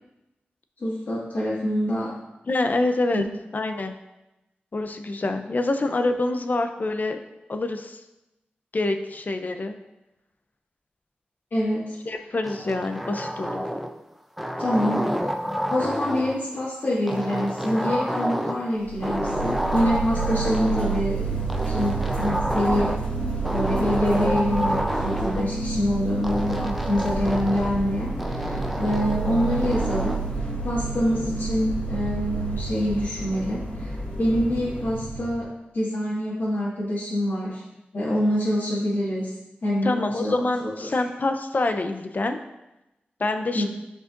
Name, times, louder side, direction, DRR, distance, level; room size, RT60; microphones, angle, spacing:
voice 1, 0.8-2.1 3.1-3.2 11.5-12.0 14.6-15.4 15.6-21.3 21.6-22.9 23.5-30.2 30.6-33.9 34.2-35.5 35.7-37.6 37.9-39.3 39.6-40.7 43.5-43.6, equal, 70° left, -10 dB, 1.8 m, -26 dB
voice 2, 2.5-3.3 3.5-4.0 4.7-7.2 7.5-8.0 8.7-9.7 12.0-13.7 39.8-42.4 43.2-43.6, left 2 dB, 50° left, 7 dB, 0.6 m, -26 dB
sound 1, 12.4-14.0 14.4-16.4 17.1-18.7 19.0-21.0 21.5-23.1 23.4-25.5 26.2-27.8 28.2-30.2, equal, ahead, 0.6 m, -29 dB
sound 2, 18.8-35.4, right 4 dB, 35° left, 2.1 m, -29 dB
9.2 x 4.8 x 2.6 m, 0.94 s
wide cardioid pair, 65°, 4 cm